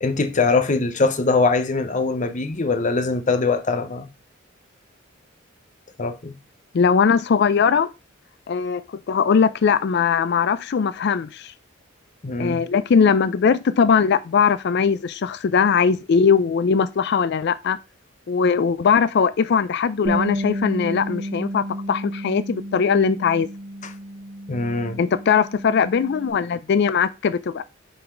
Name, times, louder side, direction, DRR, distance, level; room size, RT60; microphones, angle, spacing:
voice 1, 0.0-4.1 6.0-6.4 12.2-12.6 23.8-23.9 24.5-25.0, left 3 dB, 35° left, 0.7 m, -22 dB
voice 2, 6.7-7.9 8.5-11.5 12.4-17.8 18.3-23.5 25.0-27.6, left 6 dB, 55° left, 0.4 m, -20 dB
Bass guitar, 20.0-26.3, equal, 35° right, 1.8 m, -31 dB
5.6 x 4.0 x 5.0 m
head